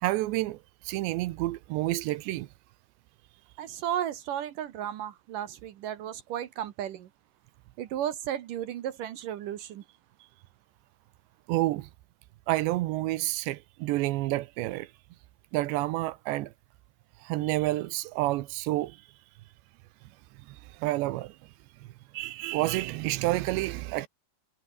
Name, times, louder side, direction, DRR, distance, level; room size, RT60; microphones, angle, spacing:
voice 1, 0.0-2.5 11.5-11.9 12.5-14.9 15.5-16.5 17.2-19.0 20.3-21.4 21.8-24.1, right 18 dB, 90° right, 3.2 m, -29 dB
voice 2, 3.6-7.1 7.8-9.8, right 11 dB, 65° right, 2.4 m, -34 dB
omnidirectional pair, 4.9 m